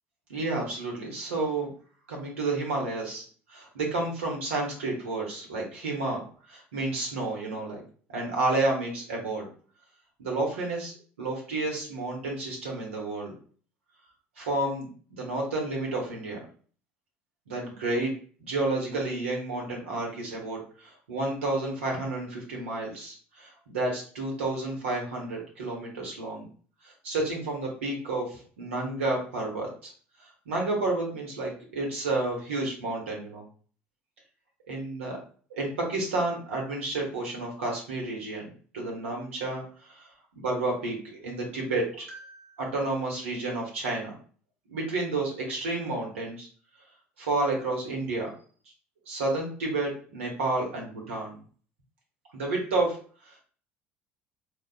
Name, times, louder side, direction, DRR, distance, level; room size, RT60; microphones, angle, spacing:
voice 1, 0.3-1.7 2.1-3.2 3.5-6.2 6.5-7.8 8.1-9.5 10.2-13.3 14.4-16.4 17.5-18.1 18.4-26.5 26.8-29.9 30.2-33.4 34.7-35.2 35.5-38.4 38.7-40.1 40.4-44.2 44.7-46.5 47.2-48.3 49.1-51.4 52.3-53.0 53.2-53.4, right 2 dB, 85° right, -1 dB, 1.0 m, -31 dB
3.8 x 2.3 x 2.3 m, 0.43 s
hypercardioid pair, 65°, 7 cm